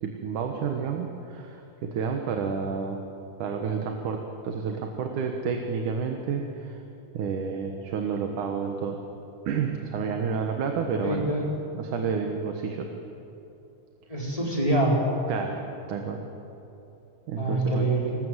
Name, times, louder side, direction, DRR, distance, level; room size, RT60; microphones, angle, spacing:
voice 1, 0.0-3.0 3.4-6.8 7.1-9.0 9.5-11.2 11.7-12.9 14.1-14.2 15.3-15.6 15.9-16.2 17.3-17.9, right 6 dB, 85° right, 3 dB, 2.9 m, -30 dB
voice 2, 11.0-11.5 14.1-15.0 17.4-18.2, right 1 dB, 10° left, -4 dB, 4.6 m, -25 dB
26.0 x 20.5 x 8.1 m, 3.0 s
omnidirectional pair, 3.5 m